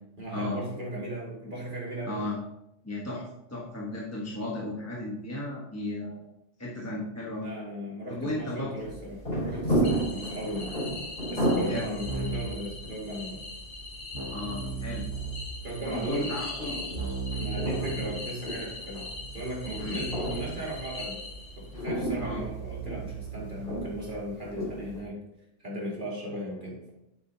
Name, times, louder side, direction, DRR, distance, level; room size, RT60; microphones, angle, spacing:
voice 1, 0.2-2.2 7.4-10.7 11.3-13.4 15.6-16.3 17.4-21.2 21.6-25.2 25.6-26.9, right 1 dB, 40° right, -4 dB, 2.5 m, -36 dB
voice 2, 2.0-2.4 2.8-6.2 6.6-7.5 8.1-8.8 11.5-11.9 14.3-15.0 15.9-16.8 19.8-20.0 22.2-22.4, left 1 dB, 15° left, -5 dB, 1.1 m, -35 dB
sound 1, 8.8-25.0, right 1 dB, 50° left, 3.1 m, -34 dB
sound 2, 9.8-21.8, left 3 dB, 70° left, 1.9 m, -42 dB
Keyboard (musical), 12.0-12.7 14.1-15.7 16.9-24.0, right 5 dB, 75° right, 1.8 m, -38 dB
8.8 x 7.9 x 2.8 m, 0.84 s
omnidirectional pair, 1.3 m